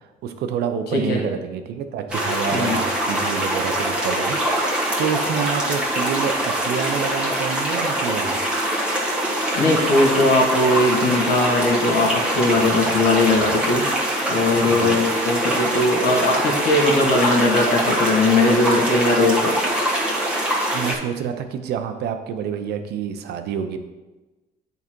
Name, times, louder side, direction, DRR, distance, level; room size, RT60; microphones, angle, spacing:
voice 1, 0.2-8.4 14.7-15.0 20.7-23.8, right 7 dB, 75° right, 8 dB, 0.7 m, -28 dB
voice 2, 0.9-1.2 2.5-2.8 9.6-13.9 14.3-19.5, left 2 dB, 70° left, 0 dB, 1.8 m, -19 dB
sound 1, 2.1-21.0, right 1 dB, 5° right, 1.5 m, -23 dB
8.4 x 4.0 x 4.5 m, 1.2 s
cardioid pair, 110°, 17 cm